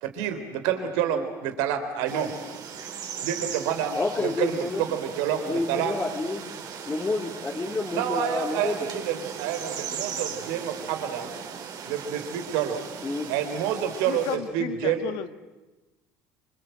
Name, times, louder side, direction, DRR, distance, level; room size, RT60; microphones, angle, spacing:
voice 1, 0.0-2.3 3.2-6.0 7.9-11.3 11.9-12.8 13.3-15.0, right 9 dB, 80° right, 8 dB, 3.5 m, -28 dB
sound 1, 2.1-14.4, right 7 dB, 55° right, 4.6 m, -38 dB
voice 2, 3.9-4.8 5.5-6.4 6.9-8.9 13.0-13.3, left 3 dB, 25° left, -1 dB, 3.4 m, -29 dB
voice 3, 14.1-15.3, left 12 dB, 75° left, 10 dB, 1.5 m, -33 dB
27.5 x 25.5 x 7.9 m, 1.1 s
supercardioid pair, 80°, 8 cm